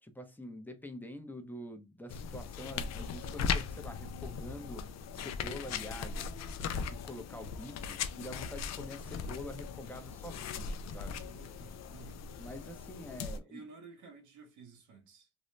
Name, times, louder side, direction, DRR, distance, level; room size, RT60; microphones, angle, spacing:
voice 1, 0.0-6.3 6.6-11.2 12.4-13.7, left 1 dB, 5° left, 0.6 m, -46 dB
sound 1, 2.1-13.4, left 6 dB, 60° left, 0.4 m, -39 dB
voice 2, 11.2-12.2 13.4-15.3, right 4 dB, 75° right, 0.9 m, -53 dB
2.6 x 2.1 x 3.1 m
cardioid pair, 90°, 30 cm